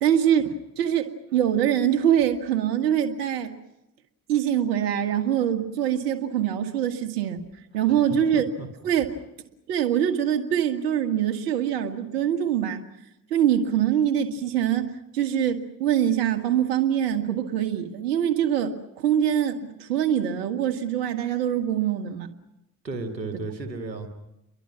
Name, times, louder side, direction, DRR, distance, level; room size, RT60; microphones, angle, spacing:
voice 1, 0.0-3.5 4.3-7.4 7.7-8.5 8.8-9.2 9.7-12.8 13.3-22.3, right 10 dB, 70° right, 6 dB, 1.9 m, -24 dB
voice 2, 7.9-8.7 22.8-24.1, right 3 dB, 85° right, 6 dB, 1.8 m, -34 dB
30.0 x 23.0 x 6.0 m, 0.90 s
figure-of-eight pair, 50°, 49 cm